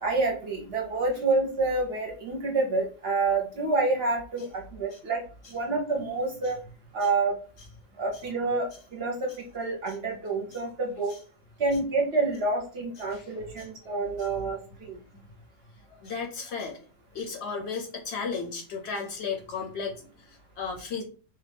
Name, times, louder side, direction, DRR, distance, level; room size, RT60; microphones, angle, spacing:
voice 1, 0.0-5.2 5.5-6.6 6.9-7.4 8.0-11.1 11.6-15.0, right 3 dB, 55° right, 0 dB, 0.8 m, -28 dB
voice 2, 15.9-16.8 17.1-21.0, left 5 dB, 60° left, 1 dB, 0.8 m, -35 dB
2.7 x 2.2 x 3.3 m, 0.39 s
omnidirectional pair, 1.4 m